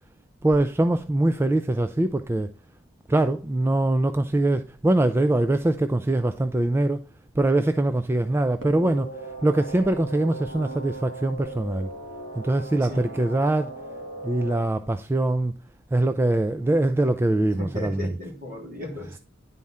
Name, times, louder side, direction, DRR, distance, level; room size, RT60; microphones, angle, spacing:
voice 1, 0.4-2.5 3.1-7.0 7.4-11.9 12.4-13.7 14.2-15.5 15.9-18.1, right 1 dB, 10° right, 0.3 m, -23 dB
sound 1, 8.6-14.6, right 3 dB, 85° right, 1.5 m, -38 dB
voice 2, 12.8-13.2 17.6-19.2, left 1 dB, 50° right, 3.3 m, -35 dB
10.5 x 4.2 x 3.6 m
head